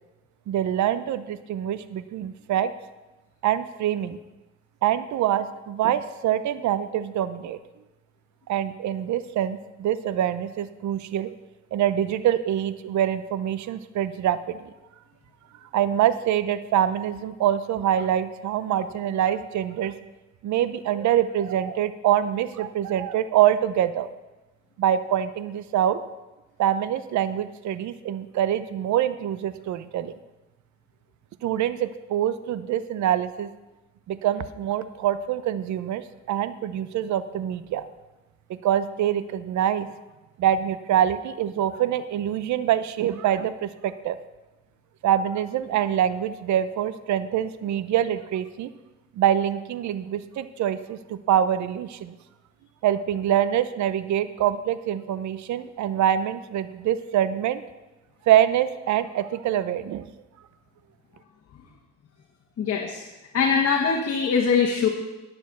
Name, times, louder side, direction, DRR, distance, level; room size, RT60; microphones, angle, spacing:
voice 1, 0.5-2.7 3.4-4.2 4.8-7.6 8.5-11.3 11.7-14.6 15.7-19.9 20.4-24.1 24.8-26.0 26.6-30.1 31.4-33.5 34.1-36.0 36.3-37.8 38.5-39.9 40.4-44.2 45.0-48.7 49.2-52.2 52.8-57.6 58.3-60.1, right 10 dB, 70° right, 13 dB, 0.6 m, -25 dB
voice 2, 62.6-63.0 63.3-64.9, left 6 dB, 55° left, 0 dB, 1.5 m, -22 dB
10.5 x 6.9 x 6.9 m, 1.1 s
cardioid pair, 90°, 30 cm